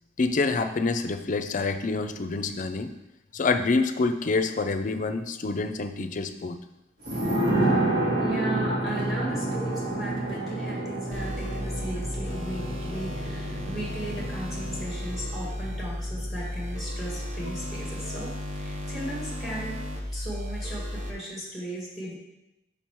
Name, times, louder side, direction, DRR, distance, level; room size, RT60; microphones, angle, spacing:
voice 1, 0.2-2.9 3.3-6.6, left 3 dB, 45° left, 9 dB, 0.5 m, -27 dB
sound 1, 7.0-16.3 16.6-16.7, right 1 dB, 80° right, 1.8 m, -29 dB
voice 2, 8.2-19.8 20.1-22.1, right 1 dB, ahead, -4 dB, 1.8 m, -36 dB
sound 2, 11.1-21.1, left 1 dB, 40° right, 0.9 m, -34 dB
5.8 x 5.5 x 4.6 m, 0.93 s
head